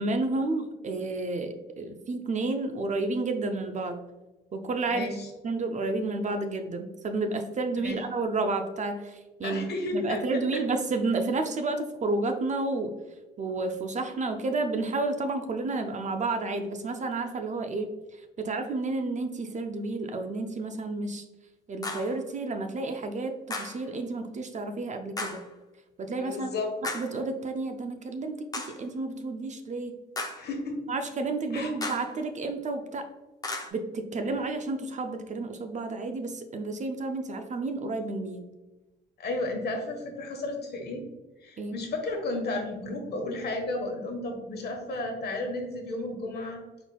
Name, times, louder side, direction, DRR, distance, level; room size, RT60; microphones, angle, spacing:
voice 1, 0.0-4.0 4.5-5.1 5.4-9.6 9.9-12.9 13.4-17.9 18.4-21.2 21.7-25.4 26.0-26.5 26.8-30.0 30.9-33.1 33.7-38.4 41.6-41.8, right 3 dB, 35° right, 6 dB, 0.5 m, -31 dB
voice 2, 4.9-5.3 7.8-8.0 9.4-10.6 26.2-26.7 30.3-30.8 31.5-31.7 39.2-41.0 41.4-46.6, left 2 dB, 55° left, 2 dB, 1.1 m, -33 dB
sound 1, 21.8-22.1 23.5-23.9 25.2-25.5 26.8-27.2 28.5-28.9 30.1-30.5 31.8-32.2 33.4-33.7, left 2 dB, 20° left, 0.6 m, -35 dB
4.4 x 4.0 x 2.2 m, 1.1 s
cardioid pair, 90°, 20 cm